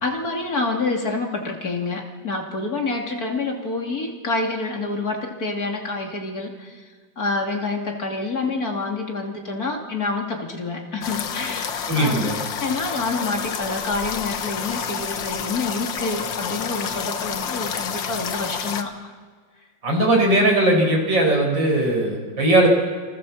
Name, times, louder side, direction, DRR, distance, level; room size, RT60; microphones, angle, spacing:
voice 1, 0.0-6.8 7.2-11.7 12.0-12.3 12.6-18.9, left 3 dB, 55° left, 1 dB, 3.3 m, -27 dB
sound 1, 11.0-18.8, left 7 dB, 90° left, 2.0 m, -29 dB
voice 2, 11.9-12.3 19.8-22.7, right 1 dB, 80° right, 1 dB, 6.2 m, -19 dB
28.5 x 24.5 x 7.4 m, 1.5 s
omnidirectional pair, 2.0 m